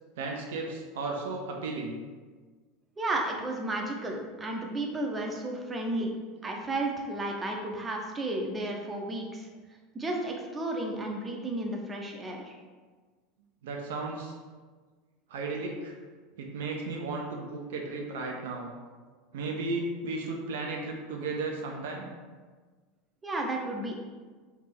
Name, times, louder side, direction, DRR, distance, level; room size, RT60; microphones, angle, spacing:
voice 1, 0.2-2.0 13.6-14.3 15.3-15.9 16.4-18.7 19.3-22.1, right 3 dB, 65° right, 1 dB, 0.4 m, -34 dB
voice 2, 3.0-6.1 6.4-9.5 9.9-12.6 23.2-23.9, right 2 dB, 20° right, 1 dB, 0.6 m, -33 dB
3.4 x 2.8 x 3.3 m, 1.4 s
figure-of-eight pair, 75°, 0 cm